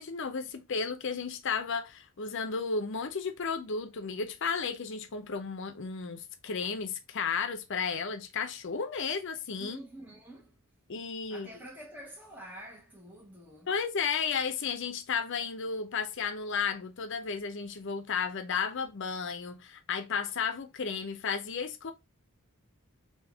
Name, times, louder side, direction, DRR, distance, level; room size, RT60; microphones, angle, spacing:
voice 1, 0.0-9.8 10.9-11.5 13.7-21.9, left 5 dB, 55° left, 0.6 m, -33 dB
voice 2, 9.5-10.6 11.3-13.8, right 1 dB, 10° right, 0.8 m, -48 dB
3.5 x 2.8 x 3.3 m
head